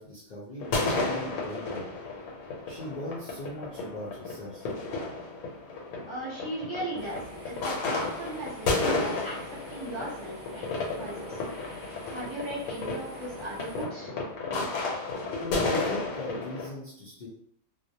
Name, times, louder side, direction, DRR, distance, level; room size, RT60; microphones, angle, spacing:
voice 1, 0.0-1.9 2.7-4.7 15.4-17.3, left 1 dB, 70° left, -6 dB, 0.4 m, -39 dB
sound 1, 0.6-16.7, left 3 dB, 90° left, 1.1 m, -33 dB
voice 2, 6.1-9.4 9.7-11.4 11.7-14.1, right 1 dB, 25° right, -8 dB, 0.9 m, -38 dB
sound 2, 7.0-13.8, equal, 55° right, 0.6 m, -47 dB
2.4 x 2.0 x 2.7 m, 0.67 s
omnidirectional pair, 1.5 m